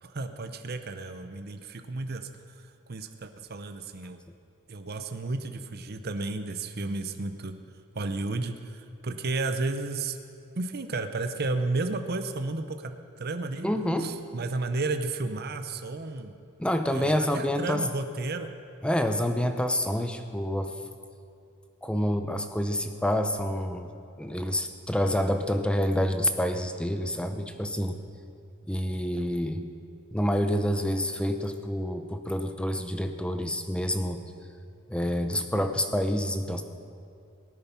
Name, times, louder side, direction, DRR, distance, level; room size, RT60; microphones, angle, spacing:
voice 1, 0.0-4.2 4.7-7.6 7.9-10.2 10.5-13.7 14.0-16.3 16.9-18.5, right 3 dB, 45° right, 8 dB, 0.7 m, -33 dB
voice 2, 13.6-14.2 16.6-17.8 18.8-20.8 21.8-23.9 24.2-28.0 28.7-29.7 30.1-34.2 34.9-36.6, equal, 5° left, 7 dB, 0.7 m, -28 dB
19.0 x 9.1 x 5.9 m, 2.6 s
head